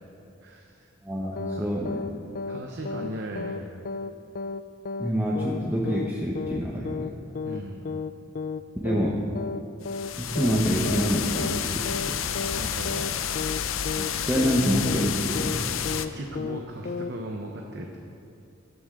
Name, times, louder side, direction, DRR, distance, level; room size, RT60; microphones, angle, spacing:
voice 1, 0.4-0.9 1.3-1.7 2.5-3.8 7.4-7.8 12.5-13.6 15.8-18.0, right 1 dB, 60° right, 1 dB, 0.9 m, -38 dB
voice 2, 1.0-2.0 5.0-7.1 8.8-9.2 10.2-12.2 14.0-15.6, equal, 10° right, -4 dB, 1.0 m, -26 dB
sound 1, 1.4-1.6 1.9-2.1 2.4-2.6 2.9-3.1 3.4-3.6 3.9-4.1 4.4-4.6 4.9-5.1 5.4-5.6 5.9-6.1 6.4-6.6 6.9-7.1 7.4-7.6 7.9-8.1 8.4-8.6 8.9-9.1 9.4-9.6 9.9-10.1 10.4-10.6 10.9-11.1 11.4-11.6 11.9-12.1 12.4-12.6 12.9-13.1 13.4-13.6 13.9-14.1 14.4-14.6 14.9-15.1 15.4-15.6 15.9-16.1 16.4-16.6 16.9-17.1, left 4 dB, 45° left, 0.3 m, -32 dB
sound 2, 9.8-16.1, left 8 dB, 85° left, 0.6 m, -30 dB
14.0 x 12.5 x 3.8 m, 2.7 s
head